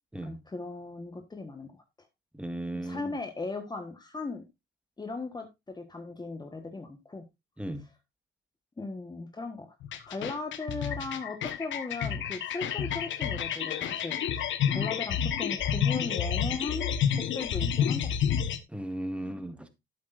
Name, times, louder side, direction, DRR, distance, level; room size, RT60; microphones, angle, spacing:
voice 1, 0.2-1.8 2.7-4.4 5.0-7.2 8.8-9.7 10.1-18.2, left 3 dB, 20° left, 1.4 m, -38 dB
voice 2, 2.3-3.2 7.6-7.8 18.7-19.7, right 1 dB, 5° right, 1.8 m, -36 dB
sound 1, 9.8-18.6, left 8 dB, 75° left, 1.3 m, -29 dB
11.5 x 8.6 x 2.6 m
cardioid pair, 90°, 20 cm